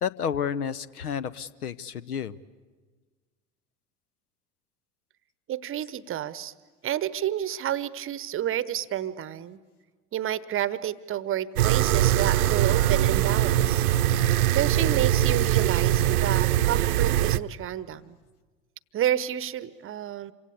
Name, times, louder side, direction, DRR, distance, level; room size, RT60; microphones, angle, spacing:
voice 1, 0.0-2.4, left 7 dB, 75° left, 17 dB, 0.9 m, -31 dB
voice 2, 5.5-6.5 6.8-9.6 10.1-13.8 14.5-18.2 18.9-20.3, right 11 dB, 30° right, 18 dB, 0.9 m, -30 dB
sound 1, 11.6-17.4, right 12 dB, 70° right, 0.8 m, -22 dB
27.5 x 24.5 x 8.6 m, 1.4 s
figure-of-eight pair, 75°, 46 cm